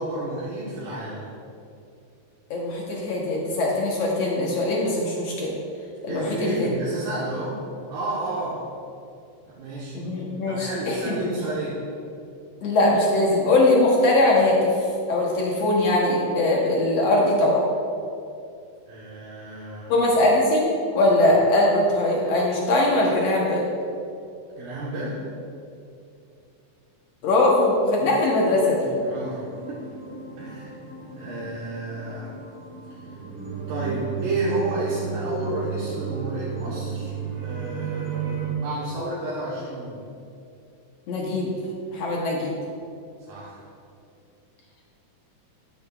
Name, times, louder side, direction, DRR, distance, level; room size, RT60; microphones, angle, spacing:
voice 1, 0.0-1.3 6.1-7.6 7.9-8.7 9.5-10.0 10.5-11.8 18.9-20.0 24.6-25.3 29.0-29.8 30.4-30.7 31.1-32.4 33.1-33.2 33.7-37.2 37.4-40.1 43.3-43.6, right 2 dB, 75° right, -6 dB, 2.7 m, -31 dB
voice 2, 2.5-5.6 6.0-6.7 9.9-11.1 12.6-14.7 15.1-17.6 19.9-23.7 27.2-28.9 41.1-41.5 41.9-42.5, left 2 dB, 70° left, -3 dB, 1.7 m, -21 dB
sound 1, 28.3-38.5, right 7 dB, 55° right, 1.4 m, -34 dB
12.0 x 9.6 x 2.4 m, 2.6 s
omnidirectional pair, 4.0 m